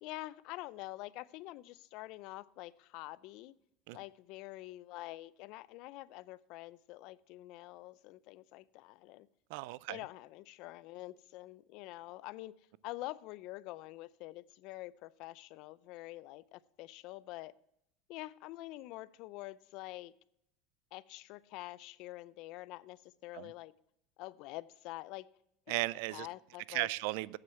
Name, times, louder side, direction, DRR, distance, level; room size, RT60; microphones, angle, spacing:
voice 1, 0.0-3.5 3.9-9.3 9.9-12.5 12.8-17.5 18.1-20.1 20.9-23.7 24.2-25.3 26.1-26.9, left 18 dB, 65° left, 20 dB, 0.5 m, -46 dB
voice 2, 9.5-10.0 23.3-23.5 25.7-26.3 26.7-27.4, right 20 dB, 70° right, 22 dB, 0.3 m, -36 dB
8.8 x 7.7 x 7.3 m, 0.79 s
supercardioid pair, 110°, 0 cm